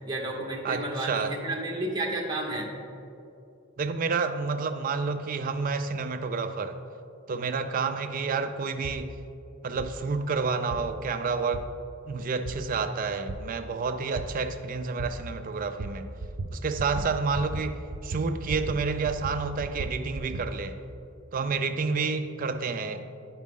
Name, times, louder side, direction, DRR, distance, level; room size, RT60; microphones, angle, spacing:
voice 1, 0.1-2.7, right 1 dB, 20° right, -2 dB, 0.8 m, -31 dB
voice 2, 0.6-1.4 3.8-6.8 7.3-9.1 9.6-11.7 12.1-16.1 16.5-20.8 21.3-23.1, right 4 dB, 40° right, 9 dB, 0.3 m, -29 dB
sound 1, 8.8-9.0 9.8-9.9 10.7-10.8 11.5-11.6 12.5-12.6 13.3-13.4 14.2-14.3 15.0-15.1 15.8-15.9 16.2-16.5 16.8-17.1 17.3-17.6 17.9-18.8 19.1-20.5, right 3 dB, 85° right, 0.6 m, -35 dB
9.2 x 4.9 x 3.6 m, 2.6 s
head